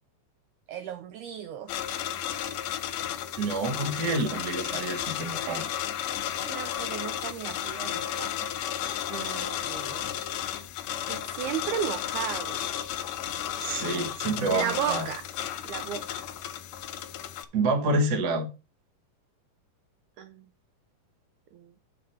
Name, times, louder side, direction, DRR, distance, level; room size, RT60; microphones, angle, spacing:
voice 1, 0.7-1.7 5.5-5.8 6.4-8.8 9.1-10.1 11.1-12.6 14.5-15.2 15.6-16.3 20.2-20.5 21.5-21.7, right 9 dB, 85° right, 1.7 m, -35 dB
sound 1, 1.7-17.4, left 11 dB, 75° left, 2.2 m, -33 dB
voice 2, 3.4-5.6 13.6-15.1 17.5-18.5, right 2 dB, 65° right, 0.9 m, -28 dB
8.4 x 5.3 x 4.3 m
omnidirectional pair, 4.1 m